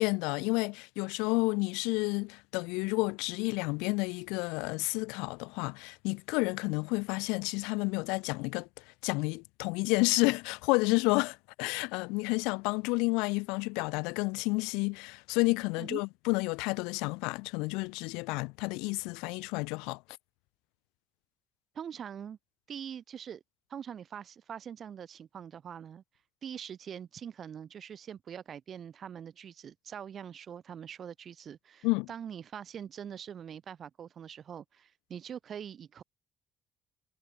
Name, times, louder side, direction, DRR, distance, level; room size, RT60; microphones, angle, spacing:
voice 1, 0.0-20.0 31.8-32.1, left 28 dB, 90° left, 0.3 m, -30 dB
voice 2, 21.7-22.4 22.7-23.4 23.7-26.0 26.4-36.0, right 8 dB, 55° right, 5.4 m, -43 dB
supercardioid pair, 75°, 0 cm